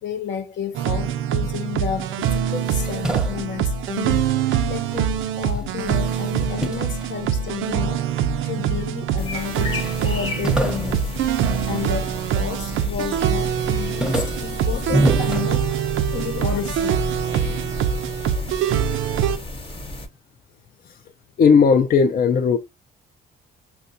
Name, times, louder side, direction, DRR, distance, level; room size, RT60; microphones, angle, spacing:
voice 1, 0.0-4.2 4.7-8.0 8.4-11.2 11.6-17.7, left 8 dB, 65° left, 0.9 m, -32 dB
sound 1, 0.7-19.4, right 8 dB, 85° right, 0.4 m, -24 dB
sound 2, 2.4-5.1 5.4-7.9 8.5-9.2 9.5-9.6 9.8-12.4 12.8-13.2 13.6-16.2, right 1 dB, 5° right, 0.7 m, -28 dB
sound 3, 9.2-20.1, left 1 dB, 25° left, 0.9 m, -34 dB
voice 2, 21.4-22.6, left 6 dB, 50° left, 0.4 m, -16 dB
5.7 x 2.3 x 2.6 m
cardioid pair, 90°, 20 cm